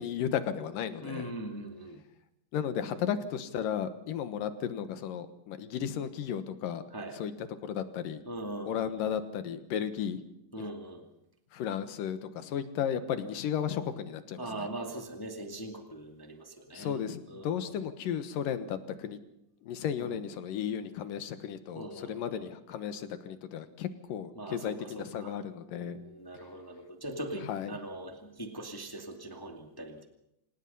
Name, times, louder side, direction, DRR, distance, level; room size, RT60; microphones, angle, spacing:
voice 1, 0.0-1.3 2.5-6.8 7.1-8.2 8.7-10.2 10.6-10.7 11.5-14.7 16.7-19.2 19.6-26.0 27.4-27.8, left 8 dB, 75° left, 11 dB, 3.0 m, -34 dB
voice 2, 1.0-2.0 6.9-7.2 8.3-9.1 10.5-11.0 14.4-17.0 17.3-17.6 20.0-20.2 21.7-22.4 24.3-25.3 25.8-30.1, right 1 dB, 10° left, 4 dB, 1.4 m, -41 dB
27.0 x 18.5 x 5.6 m, 0.81 s
omnidirectional pair, 3.9 m